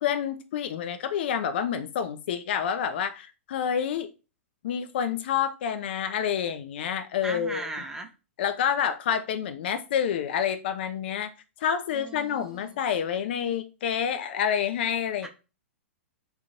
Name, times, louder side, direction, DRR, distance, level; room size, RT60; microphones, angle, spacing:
voice 1, 0.0-4.1 4.6-7.7 8.4-11.3 11.6-15.3, left 8 dB, 50° left, 0.4 m, -28 dB
voice 2, 7.2-8.1 11.9-12.7 15.2-15.3, right 2 dB, 5° right, 0.6 m, -37 dB
3.8 x 2.2 x 2.6 m
figure-of-eight pair, 110°, 7 cm